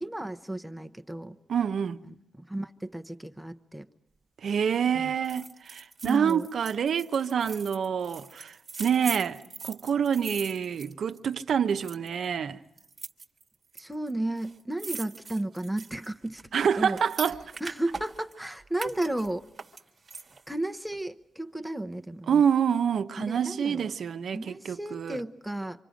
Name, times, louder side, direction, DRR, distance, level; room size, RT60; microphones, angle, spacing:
voice 1, 0.0-1.4 2.0-3.9 4.9-5.1 6.0-6.5 13.8-16.5 16.8-17.0 17.6-19.5 20.5-22.4 23.2-23.9 24.3-25.8, right 1 dB, 5° right, 0.8 m, -34 dB
voice 2, 1.5-2.0 4.4-12.6 16.5-17.4 22.3-25.2, right 7 dB, 60° right, 0.8 m, -27 dB
sound 1, 5.2-11.4 11.7-12.2 12.8-13.8 14.1-14.2 14.4-18.4 18.7-20.5 20.9-21.0, right 4 dB, 35° right, 1.4 m, -41 dB
27.5 x 25.5 x 5.1 m
wide cardioid pair, 130°, 0 cm